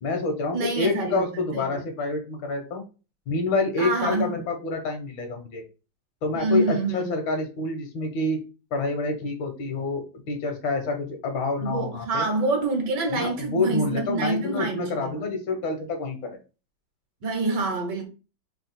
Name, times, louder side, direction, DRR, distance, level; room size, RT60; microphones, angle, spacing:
voice 1, 0.0-2.8 3.3-5.6 6.2-8.4 8.7-12.3 13.1-16.3, left 3 dB, 75° left, 1.7 m, -27 dB
voice 2, 0.5-1.8 3.8-4.4 6.3-7.1 11.6-15.4 17.2-18.0, right 3 dB, 65° right, 1.4 m, -27 dB
3.8 x 2.3 x 4.1 m
omnidirectional pair, 2.2 m